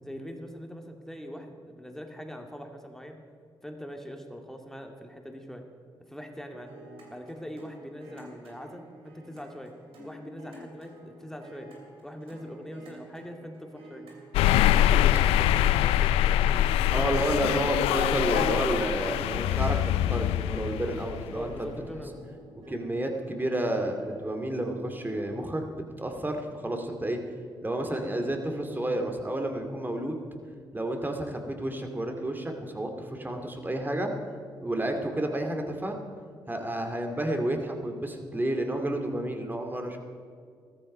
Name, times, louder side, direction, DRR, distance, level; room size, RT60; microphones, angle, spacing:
voice 1, 0.0-3.2 3.6-5.6 6.0-6.7 7.1-9.7 10.0-11.7 12.0-14.1 14.5-17.2 21.3-22.2 22.5-22.7, equal, 5° left, 3 dB, 2.2 m, -42 dB
sound 1, 6.3-25.7, equal, 80° right, 2.8 m, -50 dB
sound 2, 14.3-21.7, left 12 dB, 90° left, 0.4 m, -24 dB
voice 2, 16.9-21.5 22.7-25.6 26.0-27.2 27.6-30.2 30.7-34.1 34.6-36.0 36.5-40.0, right 1 dB, 20° right, 4 dB, 2.4 m, -30 dB
14.5 x 13.5 x 5.4 m, 2.2 s
supercardioid pair, 50°, 10 cm